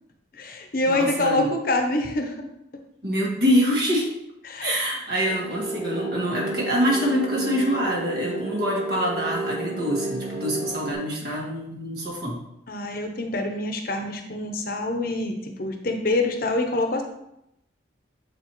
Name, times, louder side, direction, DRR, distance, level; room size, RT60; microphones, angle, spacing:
voice 1, 0.4-2.5 4.4-4.7 12.7-17.0, left 2 dB, 50° left, 4 dB, 0.7 m, -26 dB
voice 2, 0.9-1.5 3.0-4.1 4.6-12.4, equal, 55° right, -2 dB, 1.7 m, -25 dB
sound 1, 5.3-10.9, right 2 dB, 85° right, 1.7 m, -31 dB
7.1 x 4.8 x 3.0 m, 0.82 s
head